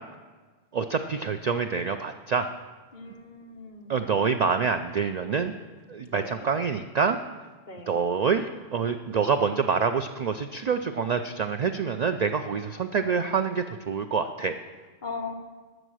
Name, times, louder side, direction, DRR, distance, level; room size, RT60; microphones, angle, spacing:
voice 1, 0.7-2.5 3.9-5.5 5.9-7.2 7.9-14.5, right 5 dB, 55° right, 8 dB, 0.4 m, -26 dB
voice 2, 2.9-3.9 6.0-6.5 7.7-8.0 15.0-15.4, left 4 dB, 45° left, 3 dB, 1.2 m, -39 dB
13.0 x 7.6 x 6.3 m, 1.4 s
omnidirectional pair, 1.1 m